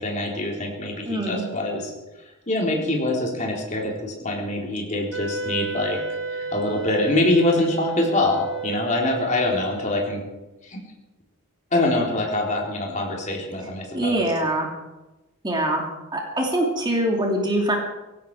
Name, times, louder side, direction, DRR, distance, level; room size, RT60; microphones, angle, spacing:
voice 1, 0.0-1.9 2.5-6.0 6.3-10.2 10.6-10.8 11.7-14.2, left 2 dB, 35° left, -1 dB, 3.7 m, -24 dB
voice 2, 1.0-1.5 13.9-14.7 15.4-15.9 16.1-17.8, right 1 dB, 20° right, 0 dB, 2.7 m, -23 dB
Wind instrument woodwind instrument, 5.1-10.3, right 5 dB, 55° right, 1.4 m, -32 dB
18.0 x 16.5 x 4.8 m, 1.1 s
head